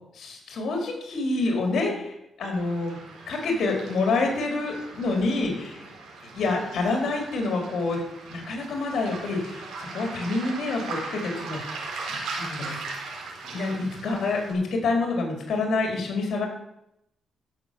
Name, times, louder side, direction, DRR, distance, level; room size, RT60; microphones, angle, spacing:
voice 1, 0.1-3.0 3.3-5.9 6.4-8.0 8.3-12.8 13.4-16.5, left 3 dB, 65° left, 1 dB, 4.4 m, -27 dB
Waves surf, 2.5-14.5, right 3 dB, 85° right, 4.4 m, -39 dB
15.0 x 7.0 x 7.1 m, 0.81 s
cardioid pair, 100°, 0 cm